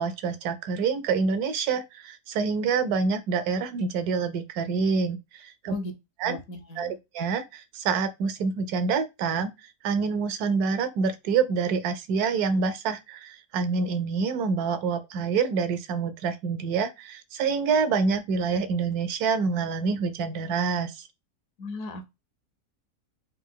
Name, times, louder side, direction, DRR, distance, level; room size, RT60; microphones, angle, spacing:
voice 1, 0.0-5.7 6.2-6.4 6.8-9.5 9.8-21.1, right 5 dB, 75° right, 1.1 m, -27 dB
voice 2, 6.2-7.0 21.6-22.1, left 2 dB, 65° left, 1.0 m, -36 dB
4.2 x 2.2 x 3.6 m
omnidirectional pair, 1.7 m